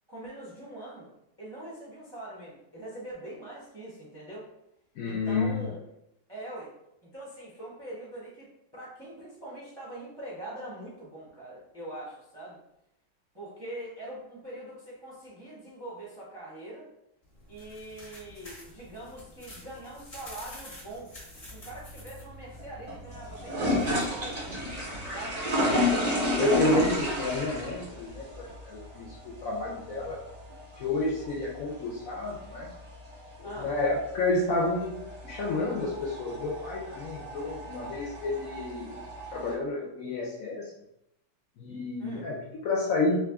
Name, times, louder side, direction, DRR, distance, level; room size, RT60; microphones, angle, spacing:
voice 1, 0.1-1.1 1.4-4.4 5.0-5.8 6.3-6.7 7.0-12.6 13.3-16.9 17.5-21.1 21.5-24.5 25.1-25.5 33.4-33.7 42.0-42.2, right 1 dB, 25° right, -6 dB, 0.6 m, -43 dB
voice 2, 5.0-5.6 25.7-25.9 26.4-30.2 30.8-32.7 33.4-35.0 35.2-39.0 39.3-40.7 41.6-43.2, left 2 dB, 70° left, -3 dB, 0.8 m, -30 dB
sound 1, 17.2-25.1, left 2 dB, 30° left, 0.8 m, -49 dB
sound 2, 21.4-39.5, left 1 dB, 80° right, 0.3 m, -33 dB
3.2 x 2.5 x 3.5 m, 0.82 s
omnidirectional pair, 1.9 m